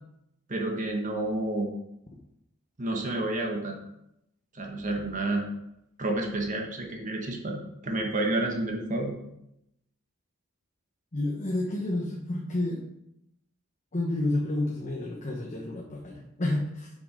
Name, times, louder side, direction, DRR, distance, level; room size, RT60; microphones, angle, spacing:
voice 1, 0.5-1.7 2.8-3.8 4.5-5.5 6.0-9.1, right 2 dB, 40° right, 1 dB, 1.2 m, -30 dB
voice 2, 11.1-12.9 13.9-16.9, left 2 dB, 35° left, -1 dB, 1.1 m, -30 dB
7.1 x 6.1 x 5.1 m, 0.82 s
head